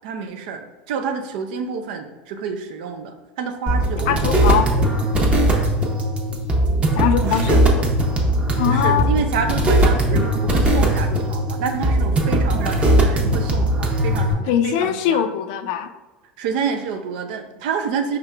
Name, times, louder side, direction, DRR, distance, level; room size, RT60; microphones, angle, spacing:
voice 1, 0.0-4.4 7.2-7.6 8.6-15.3 16.4-18.2, right 6 dB, 75° right, 6 dB, 0.5 m, -28 dB
sound 1, 3.7-14.3, right 1 dB, 25° right, 0.8 m, -19 dB
voice 2, 4.1-4.7 7.0-7.9 8.6-9.1 14.5-15.9, left 9 dB, 75° left, 9 dB, 0.3 m, -22 dB
4.9 x 3.2 x 2.3 m, 1.1 s
supercardioid pair, 100°, 5 cm